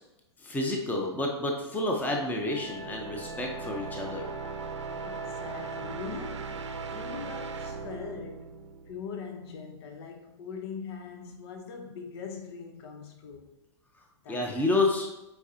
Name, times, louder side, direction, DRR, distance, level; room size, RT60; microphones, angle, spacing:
voice 1, 0.4-4.3 14.3-15.1, left 2 dB, 10° left, 0.9 m, -29 dB
sound 1, 1.8-9.5, right 4 dB, 75° right, 0.7 m, -39 dB
Wind instrument woodwind instrument, 2.5-6.8, left 3 dB, 90° left, 0.9 m, -48 dB
voice 2, 5.0-8.6 8.9-13.5 14.2-14.8, left 6 dB, 60° left, 1.0 m, -42 dB
8.1 x 4.7 x 2.9 m
hypercardioid pair, 105°, 15 cm